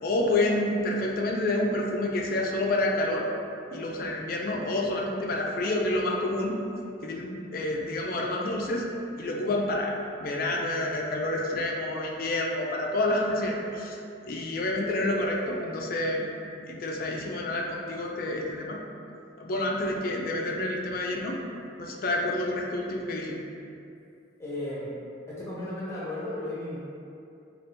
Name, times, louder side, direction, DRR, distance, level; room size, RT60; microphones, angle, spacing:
voice 1, 0.0-3.3 3.7-6.6 7.0-8.9 9.2-9.9 10.2-14.0 14.2-16.3 16.7-18.8 19.4-21.4 21.8-23.4, left 1 dB, 50° left, 0 dB, 0.3 m, -28 dB
voice 2, 24.4-24.9 25.3-26.8, left 1 dB, 15° left, -9 dB, 0.7 m, -34 dB
3.2 x 2.4 x 2.9 m, 2.7 s
head